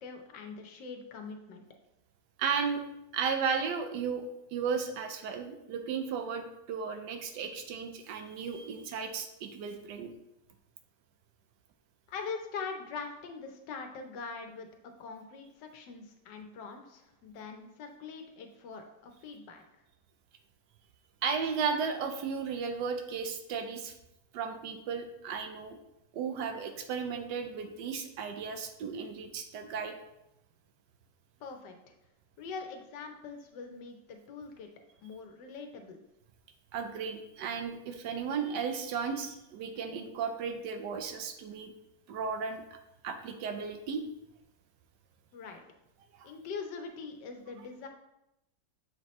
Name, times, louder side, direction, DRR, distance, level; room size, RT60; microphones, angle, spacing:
voice 1, 0.0-1.6 12.1-19.6 31.4-31.9 32.4-34.7 35.0-36.0 45.3-45.6 46.2-47.9, left 5 dB, 85° left, 4 dB, 1.4 m, -43 dB
voice 2, 2.4-2.8 3.1-10.1 21.2-23.9 24.3-25.8 26.1-30.0 36.7-41.7 42.1-42.6 43.0-44.1 46.2-46.3, right 6 dB, 85° right, 6 dB, 1.3 m, -34 dB
7.1 x 4.3 x 3.1 m, 0.86 s
omnidirectional pair, 1.8 m